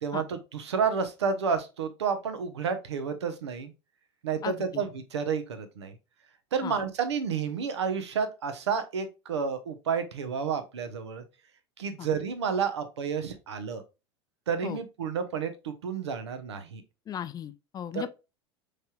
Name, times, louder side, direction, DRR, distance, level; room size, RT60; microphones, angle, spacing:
voice 1, 0.0-3.7 4.2-5.9 6.5-11.2 11.8-13.8 14.5-16.8 17.9-18.1, right 6 dB, 75° right, 0.8 m, -30 dB
voice 2, 4.4-4.8 6.6-6.7 12.0-12.1 14.6-14.8 17.1-18.1, left 9 dB, 25° left, 0.4 m, -36 dB
5.3 x 3.2 x 2.3 m
figure-of-eight pair, 80°, 14 cm